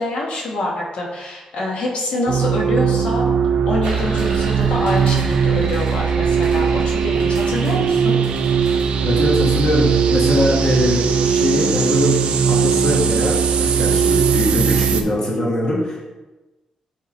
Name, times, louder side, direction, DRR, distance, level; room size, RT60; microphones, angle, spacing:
voice 1, 0.0-3.2 3.7-8.2, left 2 dB, 70° left, -2 dB, 1.2 m, -25 dB
sound 1, 2.3-15.0, right 6 dB, 75° right, 0.5 m, -18 dB
sound 2, 3.8-10.4, right 3 dB, 50° right, 2.2 m, -33 dB
voice 2, 9.0-12.2 12.5-16.1, left 1 dB, 35° left, -3 dB, 1.4 m, -21 dB
7.1 x 3.6 x 4.3 m, 1.1 s
wide cardioid pair, 165°, 2 cm